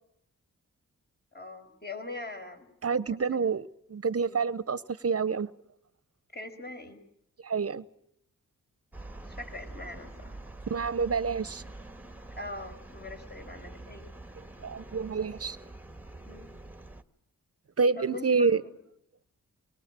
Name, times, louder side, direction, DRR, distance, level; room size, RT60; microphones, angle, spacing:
voice 1, 1.3-3.5 4.2-4.4 6.3-7.0 9.2-10.4 12.4-14.1 16.3-16.6 18.0-18.8, left 2 dB, 30° left, 5 dB, 5.5 m, -43 dB
voice 2, 2.8-5.5 7.4-7.8 10.7-11.6 14.6-15.6 17.8-18.6, right 5 dB, 45° right, 16 dB, 0.9 m, -28 dB
sound 1, 8.9-17.0, right 2 dB, 5° right, 1.5 m, -46 dB
23.5 x 21.5 x 7.6 m, 0.75 s
wide cardioid pair, 100°, 33 cm